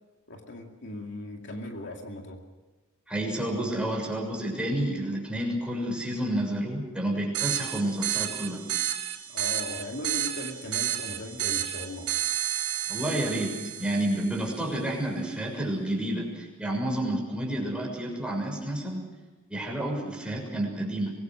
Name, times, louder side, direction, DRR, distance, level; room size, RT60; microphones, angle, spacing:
voice 1, 0.3-2.4 9.3-12.1, left 1 dB, 55° left, 2 dB, 2.4 m, -38 dB
voice 2, 3.1-8.6 12.9-19.1 19.5-21.1, right 1 dB, 5° right, 0 dB, 6.6 m, -30 dB
sound 1, 7.3-14.5, right 12 dB, 90° right, 3.3 m, -31 dB
25.0 x 22.5 x 6.3 m, 1.3 s
head